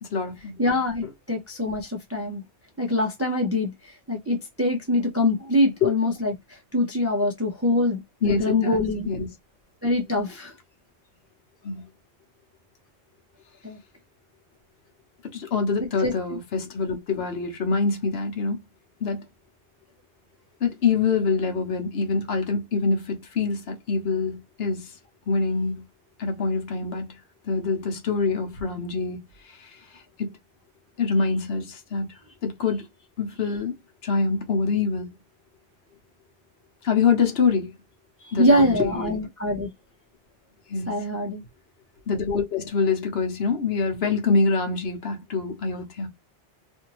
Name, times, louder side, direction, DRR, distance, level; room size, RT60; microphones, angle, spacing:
voice 1, 0.0-0.6 5.8-5.9 8.2-8.8 9.0-9.3 11.6-11.9 15.2-18.6 19.0-19.2 20.6-24.9 25.3-25.8 26.2-27.2 27.5-29.2 29.6-29.7 30.2-30.3 31.0-32.1 32.4-32.9 33.2-33.7 34.0-35.1 36.8-37.7 38.3-39.2 40.7-41.0 42.1-46.1, left 4 dB, 65° left, 1.0 m, -25 dB
voice 2, 0.6-2.4 2.8-9.1 9.8-10.5 13.6-13.8 15.8-16.1 38.2-39.7 40.9-41.4, left 1 dB, 20° right, 0.5 m, -24 dB
2.6 x 2.6 x 3.0 m
omnidirectional pair, 1.1 m